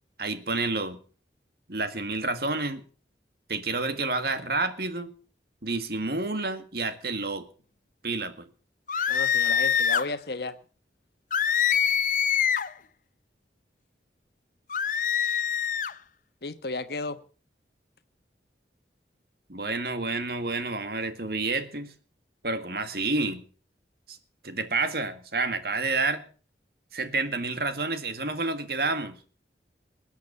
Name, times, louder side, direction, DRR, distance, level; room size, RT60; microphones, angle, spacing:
voice 1, 0.2-1.0 1.7-2.8 3.5-5.1 5.6-7.4 8.0-8.5 19.5-21.9 22.4-23.4 24.1-24.2 24.4-26.2 26.9-29.2, right 3 dB, 60° right, 1.8 m, -29 dB
sound 1, 8.9-10.1 11.3-12.7 14.7-15.9, left 8 dB, 45° left, 0.6 m, -24 dB
voice 2, 9.1-10.6 16.4-17.2, left 3 dB, 65° left, 1.2 m, -33 dB
21.0 x 8.4 x 6.9 m
head